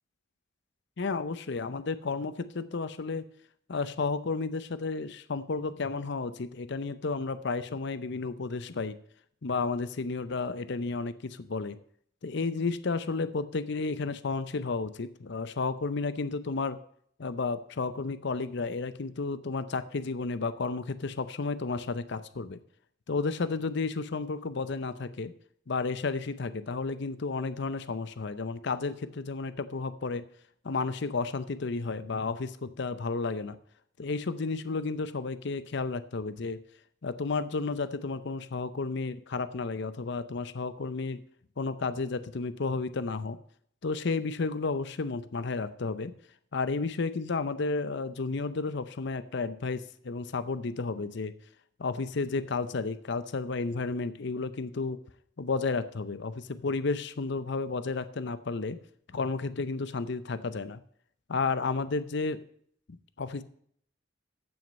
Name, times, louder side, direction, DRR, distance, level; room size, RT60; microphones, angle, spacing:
voice 1, 1.0-3.3 3.7-9.0 9.4-11.8 12.2-16.8 17.2-22.6 23.1-25.3 25.7-30.2 30.6-33.6 34.0-36.6 37.0-41.2 41.6-43.4 43.8-46.1 46.5-51.3 51.8-55.0 55.4-58.8 59.1-60.8 61.3-62.4 62.9-63.4, left 4 dB, 65° left, 14 dB, 0.7 m, -32 dB
14.5 x 6.4 x 5.3 m, 0.64 s
head